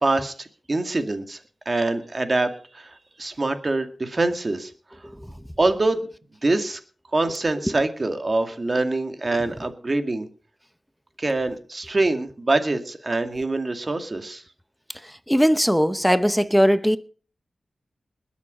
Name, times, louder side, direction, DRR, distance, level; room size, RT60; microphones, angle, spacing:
voice 1, 0.0-1.4 1.7-5.0 5.6-6.1 6.4-6.8 7.1-10.3 11.2-14.4, right 2 dB, 40° right, 2.2 m, -25 dB
voice 2, 15.0-17.0, equal, ahead, 0.9 m, -20 dB
21.0 x 7.2 x 5.5 m
cardioid pair, 60°, 0 cm